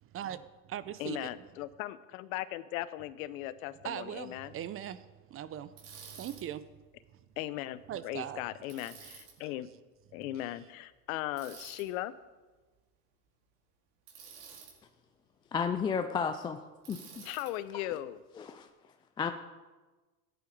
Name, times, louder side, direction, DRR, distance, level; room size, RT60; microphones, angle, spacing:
voice 1, 0.0-1.3 3.8-5.7 6.0-6.7 7.9-8.4, right 10 dB, 30° right, 14 dB, 0.7 m, -40 dB
voice 2, 1.0-4.5 7.4-9.7 10.1-12.1 17.2-18.2, left 14 dB, 60° left, 15 dB, 0.9 m, -38 dB
Bicycle, 5.8-6.4 8.7-9.3 11.4-11.8 14.1-14.7 16.8-17.5, right 6 dB, 60° right, 4.6 m, -50 dB
voice 3, 15.5-16.6 16.9-17.2 18.4-18.7 19.2-19.3, left 6 dB, 10° left, 7 dB, 0.3 m, -32 dB
15.0 x 10.5 x 4.9 m, 1.2 s
hypercardioid pair, 100°, 47 cm